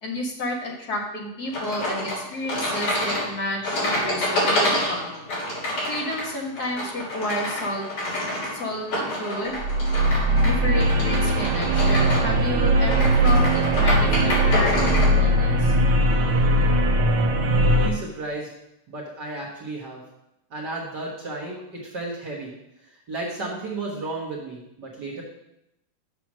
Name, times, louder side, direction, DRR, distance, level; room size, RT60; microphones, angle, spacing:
voice 1, 0.0-5.3 5.9-8.2 8.5-9.6 10.4-15.7, left 1 dB, 50° left, -1 dB, 1.2 m, -31 dB
sound 1, 1.5-15.1, left 1 dB, 70° left, 4.9 m, -28 dB
sound 2, 9.6-17.9, right 1 dB, 85° right, 1.2 m, -20 dB
voice 2, 17.4-18.5 18.9-20.0 20.5-22.5 22.8-25.2, right 2 dB, 45° right, -4 dB, 1.4 m, -33 dB
7.6 x 5.9 x 6.1 m, 0.84 s
omnidirectional pair, 3.6 m